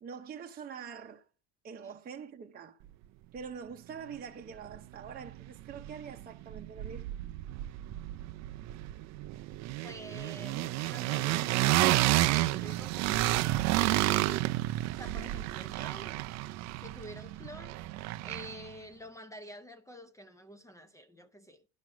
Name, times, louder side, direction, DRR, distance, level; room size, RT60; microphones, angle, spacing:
voice 1, 0.0-1.2 1.6-2.8 3.3-7.1 10.5-10.7, right 6 dB, 25° right, 0.7 m, -44 dB
sound 1, 4.7-4.8 5.1-6.2 6.5-18.7, right 17 dB, 50° right, 0.4 m, -31 dB
voice 2, 9.8-16.2 16.8-17.8 18.2-21.6, equal, 10° left, 0.5 m, -48 dB
10.5 x 6.1 x 5.9 m
cardioid pair, 140°, 35 cm